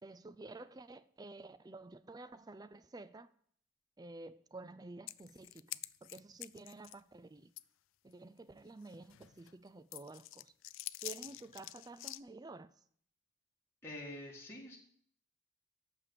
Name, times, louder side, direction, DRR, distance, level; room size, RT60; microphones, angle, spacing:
voice 1, 0.0-3.3 4.0-5.7 6.0-7.5 8.0-10.5 11.0-12.7, right 2 dB, 20° right, 0.4 m, -51 dB
sound 1, 5.1-7.0 7.6-7.7 8.1-8.2 8.9-9.5 9.9-12.2, left 17 dB, 75° left, 0.3 m, -47 dB
voice 2, 13.8-14.8, left 1 dB, 15° left, 1.5 m, -46 dB
8.5 x 6.7 x 6.9 m
head